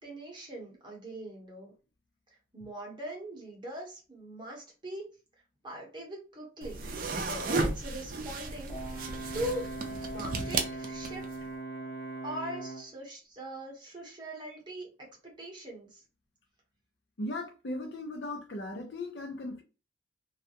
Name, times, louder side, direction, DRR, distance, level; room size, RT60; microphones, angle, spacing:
voice 1, 0.0-1.7 2.5-5.1 5.6-11.2 12.2-16.0, right 1 dB, 25° right, 0.9 m, -41 dB
sound 1, 6.6-11.4, right 3 dB, 45° right, 0.4 m, -34 dB
Brass instrument, 8.7-12.9, right 2 dB, 20° left, 0.8 m, -40 dB
voice 2, 17.2-19.6, left 1 dB, 65° left, 0.6 m, -37 dB
2.3 x 2.1 x 2.8 m
head